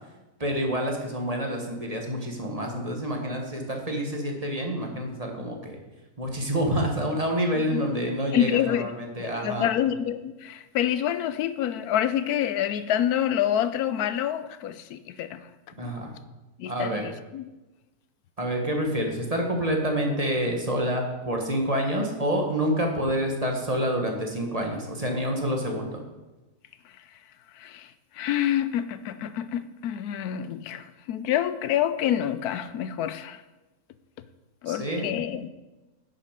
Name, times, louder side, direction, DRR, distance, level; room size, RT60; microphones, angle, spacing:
voice 1, 0.4-5.8 6.2-9.7 15.8-16.1 16.6-17.0 18.4-26.0 34.7-35.2, equal, 25° right, 1 dB, 1.4 m, -28 dB
voice 2, 8.3-8.9 9.2-15.5 16.6-17.4 27.5-33.4 34.6-35.5, left 10 dB, 90° left, 13 dB, 1.1 m, -27 dB
11.0 x 6.5 x 5.1 m, 1.1 s
omnidirectional pair, 1.6 m